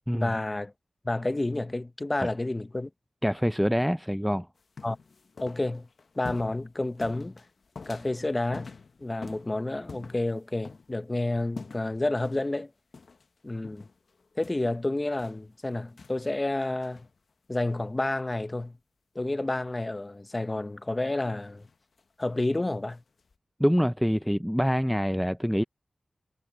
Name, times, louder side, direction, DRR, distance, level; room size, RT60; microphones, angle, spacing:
voice 1, 0.1-0.7 1.0-2.9 4.8-5.0 5.4-5.9 6.2-7.4 7.9-8.7 9.0-12.7 13.4-13.9 14.4-17.1 17.5-18.8 19.1-21.7 22.2-23.0, left 2 dB, 25° left, 0.8 m, -30 dB
voice 2, 3.2-4.5 23.6-25.6, equal, ahead, 0.3 m, -25 dB
sound 1, 4.6-10.9 11.6-12.0 12.2-12.6 12.9-13.3 13.6-16.3 16.6-17.2 17.8-18.0 21.0-22.2 22.9-23.3, left 4 dB, 70° left, 0.9 m, -46 dB
wide cardioid pair, 110°, 0 cm